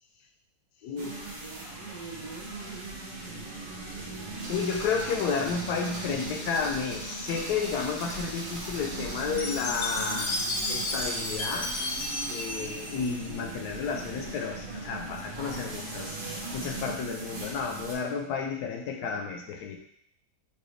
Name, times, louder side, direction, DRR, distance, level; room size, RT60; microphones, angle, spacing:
voice 1, 0.8-2.0 4.5-10.4 10.7-11.8 12.3-16.2 16.5-19.8, left 5 dB, 80° left, 3 dB, 1.1 m, -32 dB
sound 1, 1.0-17.9, right 2 dB, 80° right, 1.5 m, -39 dB
sound 2, 4.4-12.4, right 1 dB, 55° right, 1.2 m, -41 dB
Chime, 9.4-13.7, left 2 dB, 55° left, 0.8 m, -33 dB
4.6 x 2.6 x 3.1 m, 0.68 s
omnidirectional pair, 1.7 m